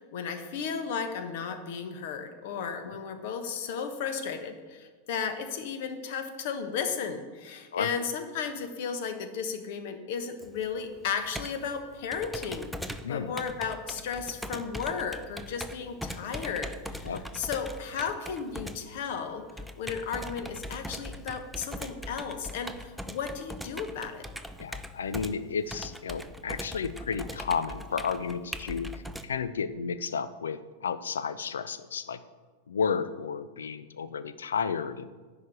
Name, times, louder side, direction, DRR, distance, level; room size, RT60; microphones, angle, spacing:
voice 1, 0.0-19.4 19.8-24.3, left 6 dB, 50° left, 8 dB, 1.2 m, -34 dB
Computer keyboard, 10.4-29.2, equal, ahead, 0.5 m, -41 dB
voice 2, 24.6-32.2 32.7-35.1, left 6 dB, 65° left, 14 dB, 0.5 m, -32 dB
11.0 x 5.1 x 8.3 m, 1.4 s
figure-of-eight pair, 90°, 0 cm